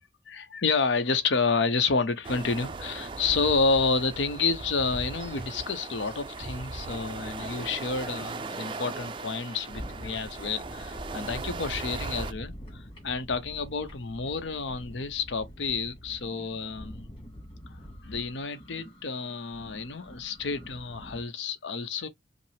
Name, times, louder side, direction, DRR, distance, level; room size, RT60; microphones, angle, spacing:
voice 1, 0.3-17.1 17.7-17.8 18.0-22.1, left 4 dB, 85° left, 0.8 m, -29 dB
sound 1, 2.2-12.3, right 3 dB, 25° right, 0.3 m, -38 dB
sound 2, 4.9-6.9 7.3-21.2, equal, 30° left, 2.2 m, -46 dB
5.1 x 2.0 x 3.3 m
head